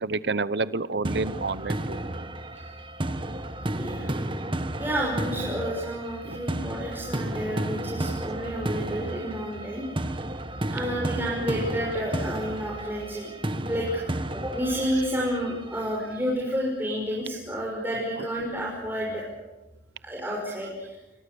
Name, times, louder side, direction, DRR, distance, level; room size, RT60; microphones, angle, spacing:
voice 1, 0.0-2.0 6.2-6.4, right 3 dB, 70° right, 16 dB, 0.8 m, -29 dB
sound 1, 1.0-16.0, right 1 dB, 30° right, 1.4 m, -32 dB
voice 2, 3.7-4.1 4.8-10.1 10.7-14.0 14.3-19.2 20.0-21.0, equal, 10° right, -4 dB, 6.0 m, -30 dB
27.5 x 24.5 x 7.0 m, 1.0 s
head